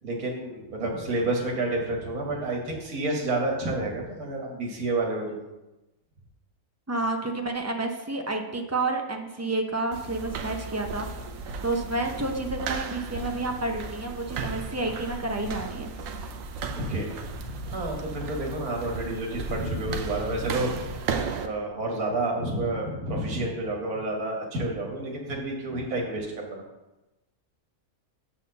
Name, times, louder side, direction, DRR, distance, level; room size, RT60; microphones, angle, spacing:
voice 1, 0.0-5.5 16.8-17.1 17.5-21.0 21.4-26.6, right 2 dB, 85° right, 0 dB, 1.9 m, -29 dB
voice 2, 6.9-11.1 11.5-15.9, right 2 dB, 20° right, 3 dB, 0.4 m, -30 dB
sound 1, 9.9-21.5, right 4 dB, 70° right, 1.1 m, -35 dB
6.9 x 4.4 x 6.7 m, 1.0 s
omnidirectional pair, 1.5 m